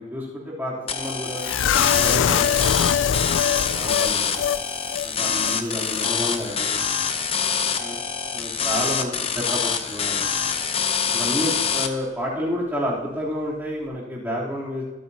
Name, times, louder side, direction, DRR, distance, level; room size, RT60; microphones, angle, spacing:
voice 1, 0.0-1.4 1.9-4.5 5.0-6.8 7.8-8.0 8.3-10.3 11.1-14.8, equal, 10° right, -7 dB, 3.2 m, -30 dB
sound 1, 0.9-11.9, left 6 dB, 30° left, 0.7 m, -25 dB
sound 2, 1.4-4.6 4.9-5.1 5.4-5.5, left 8 dB, 80° left, 0.4 m, -22 dB
22.5 x 8.8 x 2.8 m, 1.2 s
head